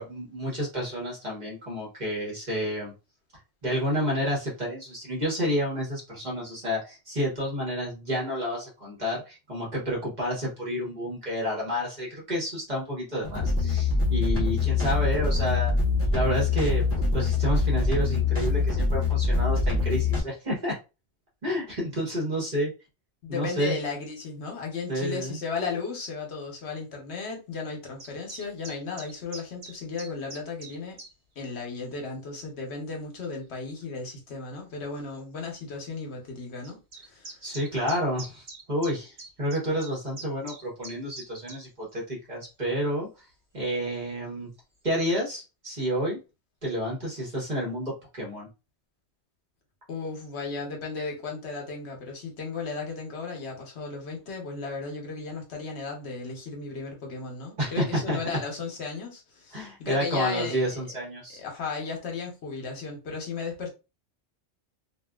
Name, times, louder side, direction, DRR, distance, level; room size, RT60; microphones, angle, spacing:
voice 1, 0.0-2.9 3.6-15.7 16.1-16.8 17.1-20.8 21.4-22.7 23.3-23.7 24.9-25.4 37.4-43.1 43.5-44.5 44.8-46.2 46.6-48.5 57.6-58.2 59.5-61.4, equal, 40° right, 1.3 m, -30 dB
sound 1, 13.2-20.2, left 3 dB, 15° left, 0.7 m, -24 dB
voice 2, 23.2-31.0 31.4-37.4 49.9-60.8 61.4-63.7, left 4 dB, 70° left, 1.1 m, -35 dB
sound 2, 28.0-31.1 31.8-32.0 32.9-33.0 34.1-34.2 34.5-34.6 34.9-35.0 36.6-41.6, right 3 dB, 65° right, 1.3 m, -43 dB
2.7 x 2.5 x 2.3 m
omnidirectional pair, 1.2 m